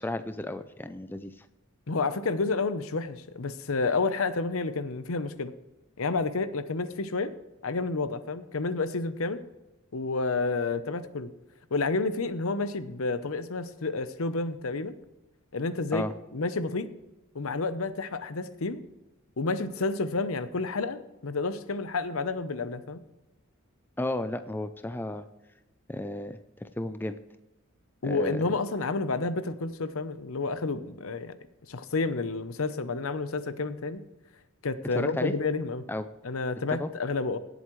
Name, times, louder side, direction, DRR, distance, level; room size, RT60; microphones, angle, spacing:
voice 1, 0.0-1.5 15.9-16.1 24.0-25.3 25.9-27.2 28.0-28.4 35.0-35.3 35.9-36.1 36.7-36.9, left 1 dB, 10° left, 10 dB, 0.4 m, -33 dB
voice 2, 1.9-5.5 6.0-7.3 7.6-9.4 9.9-11.3 11.7-14.9 15.5-16.1 16.3-16.9 17.3-18.8 19.4-23.0 28.0-31.3 31.7-34.0 34.6-35.8 36.2-37.4, left 3 dB, 75° left, 13 dB, 0.8 m, -30 dB
17.5 x 8.0 x 3.1 m, 1.0 s
head